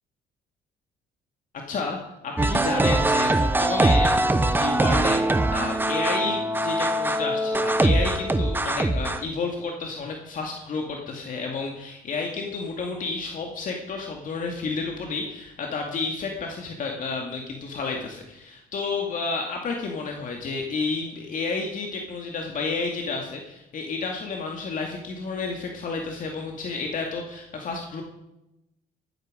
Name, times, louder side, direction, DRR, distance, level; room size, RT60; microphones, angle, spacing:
voice 1, 1.7-2.0 2.2-28.0, left 4 dB, 55° left, 1 dB, 2.4 m, -31 dB
sound 1, 2.4-9.2, right 2 dB, 10° right, 0.9 m, -22 dB
15.5 x 13.0 x 5.2 m, 0.90 s
cardioid pair, 105°, 17 cm